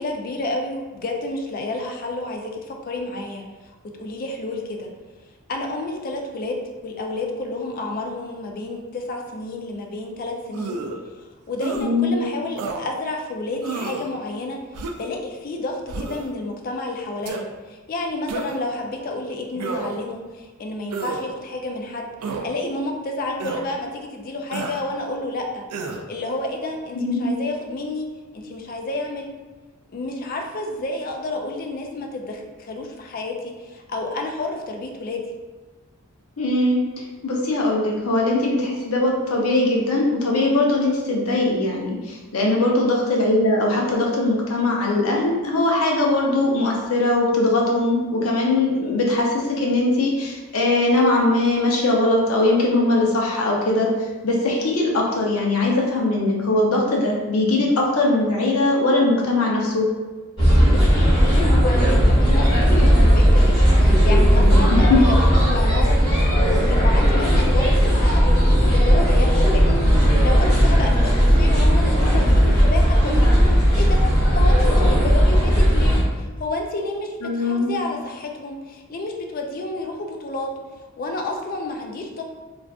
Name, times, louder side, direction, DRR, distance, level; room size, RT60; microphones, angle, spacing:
voice 1, 0.0-4.9 5.5-6.6 6.8-10.8 11.5-14.6 15.0-25.6 26.1-28.1 28.3-29.3 29.9-35.2 42.5-42.8 60.6-80.5 81.0-82.2, left 2 dB, 40° left, 2 dB, 0.3 m, -30 dB
sound 1, 10.5-11.0 11.6-11.9 12.6-12.8 13.6-14.1 14.7-15.1 15.9-16.3 17.2-17.4 18.3-18.7 19.6-20.1 20.9-21.3 22.2-22.5 23.4-23.7 24.5-24.8 25.7-26.0, right 4 dB, 80° right, 0.3 m, -30 dB
voice 2, 11.7-12.2 26.9-27.3 36.4-36.8 37.2-53.9 54.2-59.9 64.7-65.0 77.2-77.7, left 2 dB, 75° left, -2 dB, 0.6 m, -20 dB
sound 2, 60.4-76.0, equal, 15° left, 1.3 m, -16 dB
2.4 x 2.4 x 3.4 m, 1.3 s
head